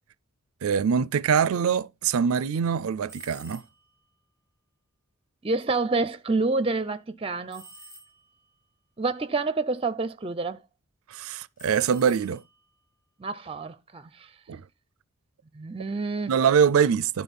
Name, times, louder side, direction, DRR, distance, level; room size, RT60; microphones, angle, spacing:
voice 1, 0.6-3.6 11.1-12.4 14.5-14.6 16.3-17.2, right 7 dB, 80° right, 0.4 m, -23 dB
sound 1, 3.1-4.0 7.5-8.5 11.6-12.7, equal, 40° left, 2.5 m, -49 dB
voice 2, 5.4-7.7 9.0-10.6 13.2-14.3 15.5-16.4, right 3 dB, 25° right, 0.5 m, -28 dB
11.5 x 4.2 x 5.4 m
head